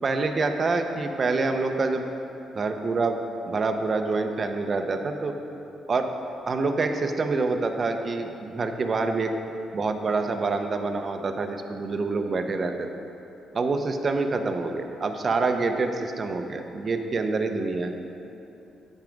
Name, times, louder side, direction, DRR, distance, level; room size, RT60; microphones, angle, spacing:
voice 1, 0.0-2.0 2.5-3.2 3.5-5.3 5.9-6.1 6.5-9.3 9.7-12.9 13.5-17.9, right 3 dB, 40° right, 6 dB, 0.7 m, -26 dB
9.0 x 5.9 x 5.1 m, 2.9 s
cardioid pair, 90°, 0 cm